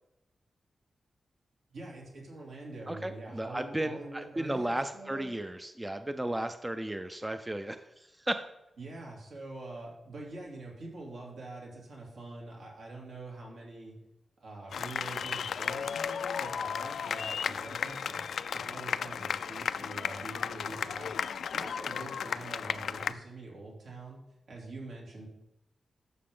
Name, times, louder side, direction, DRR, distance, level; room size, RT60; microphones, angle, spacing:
voice 1, 1.7-5.3 8.8-14.0 14.4-18.2 18.5-21.1 21.5-24.2 24.5-25.3, right 2 dB, 75° right, -2 dB, 2.8 m, -45 dB
voice 2, 2.9-8.5, right 1 dB, 10° right, 9 dB, 0.4 m, -34 dB
sound 1, 14.7-23.1, left 7 dB, 85° left, 0.3 m, -34 dB
11.5 x 6.9 x 3.8 m, 0.93 s
wide cardioid pair, 175°, 0 cm